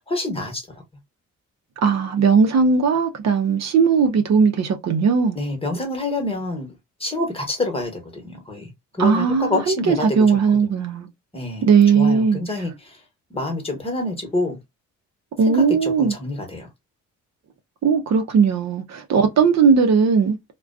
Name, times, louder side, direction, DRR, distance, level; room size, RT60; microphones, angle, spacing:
voice 1, 0.1-0.6 5.3-6.7 7.0-8.7 9.0-10.1 11.3-11.6 11.9-12.7 13.3-14.6 15.5-16.7, left 2 dB, 20° left, 1.1 m, -27 dB
voice 2, 1.8-5.4 9.0-11.1 11.6-12.4 15.4-16.1 17.8-20.4, right 5 dB, 60° right, 0.6 m, -18 dB
2.3 x 2.2 x 2.4 m
cardioid pair, 95°, 31 cm